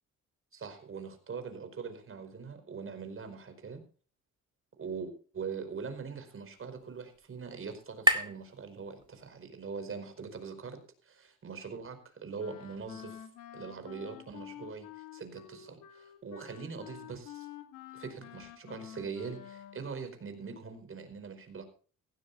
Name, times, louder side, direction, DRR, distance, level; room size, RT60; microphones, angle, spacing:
voice 1, 0.5-3.8 4.8-10.8 11.0-13.3 13.5-17.5 17.9-21.6, right 5 dB, 45° right, 7 dB, 5.1 m, -42 dB
sound 1, 5.7-9.5, equal, 15° right, 2.4 m, -35 dB
Wind instrument woodwind instrument, 12.4-19.9, left 11 dB, 90° left, 2.5 m, -49 dB
17.0 x 16.0 x 2.6 m, 0.39 s
cardioid pair, 90°, 30 cm